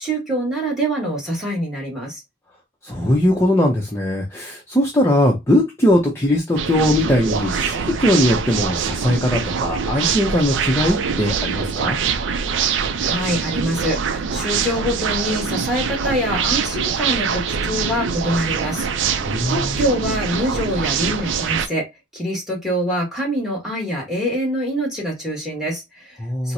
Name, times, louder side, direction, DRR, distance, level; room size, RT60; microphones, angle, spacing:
voice 1, 0.0-2.2 13.0-21.9 22.1-26.2 26.4-26.5, equal, ahead, 1.3 m, -25 dB
voice 2, 2.8-12.0 19.2-19.8 26.2-26.5, left 1 dB, 15° left, 0.6 m, -20 dB
sound 1, 6.6-21.7, right 6 dB, 80° right, 0.4 m, -24 dB
4.3 x 2.0 x 2.6 m
head